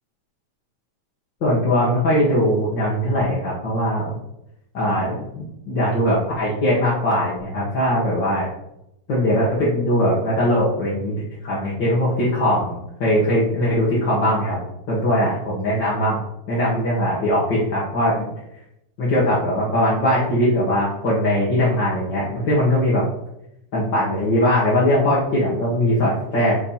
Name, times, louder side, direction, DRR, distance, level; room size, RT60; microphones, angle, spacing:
voice 1, 1.4-4.2 4.7-8.5 9.1-14.6 14.9-16.2 16.5-18.3 19.0-23.0 23.7-26.6, equal, 45° left, -8 dB, 1.9 m, -20 dB
8.9 x 3.3 x 4.4 m, 0.83 s
omnidirectional pair, 3.4 m